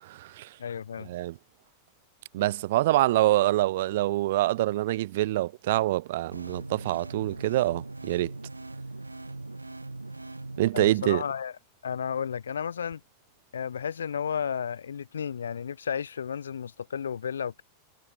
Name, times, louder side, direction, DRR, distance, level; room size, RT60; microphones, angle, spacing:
voice 1, 0.0-0.5 1.0-1.3 2.3-8.3 10.6-11.2, right 16 dB, 55° right, 0.8 m, -25 dB
voice 2, 0.6-1.1 10.7-11.6 11.8-13.0 13.5-17.6, left 7 dB, 70° left, 0.7 m, -33 dB
sound 1, 6.3-10.7, right 2 dB, 85° right, 0.6 m, -40 dB
figure-of-eight pair, 90°, 0 cm